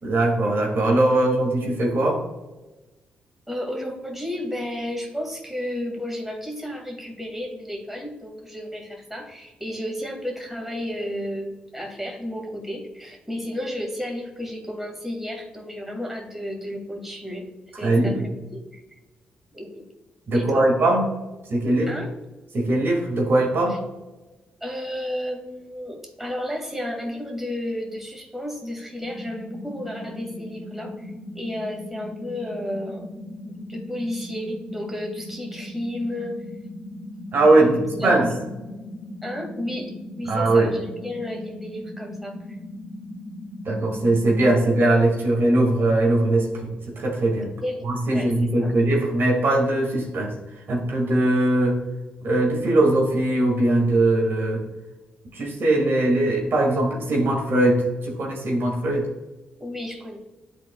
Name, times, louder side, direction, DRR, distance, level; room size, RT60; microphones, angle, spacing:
voice 1, 0.0-2.2 17.8-18.3 20.3-21.1 21.5-21.9 22.5-23.8 37.3-38.3 40.3-40.7 43.6-47.5 47.8-50.3 50.7-51.8 52.2-54.6 55.3-59.1, right 2 dB, 60° right, 0 dB, 1.8 m, -20 dB
voice 2, 3.5-17.5 17.8-18.4 18.7-18.8 19.5-19.8 20.3-20.7 21.9-22.2 24.6-33.1 33.7-36.4 37.4-38.4 39.2-42.6 47.6-48.7 59.6-60.2, left 1 dB, 5° right, 1 dB, 1.9 m, -32 dB
sound 1, 29.0-44.6, left 1 dB, 80° left, 1.9 m, -38 dB
10.5 x 4.0 x 2.2 m, 1.1 s
supercardioid pair, 50°, 4 cm